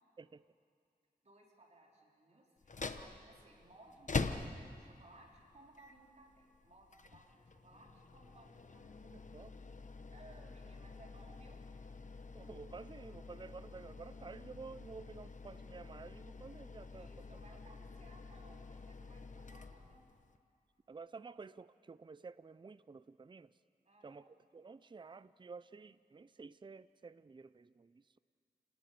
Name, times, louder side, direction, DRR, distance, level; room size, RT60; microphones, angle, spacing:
voice 1, 1.2-8.8 10.1-11.6 16.9-20.1 23.8-24.2, right 2 dB, 45° right, -2 dB, 4.2 m, -62 dB
sound 1, 2.6-20.4, left 4 dB, 50° left, 1.0 m, -46 dB
voice 2, 9.1-9.5 12.3-17.2 20.9-23.5 24.0-28.2, right 4 dB, 30° right, 16 dB, 0.5 m, -52 dB
29.5 x 19.0 x 6.8 m, 2.3 s
wide cardioid pair, 80°, 16 cm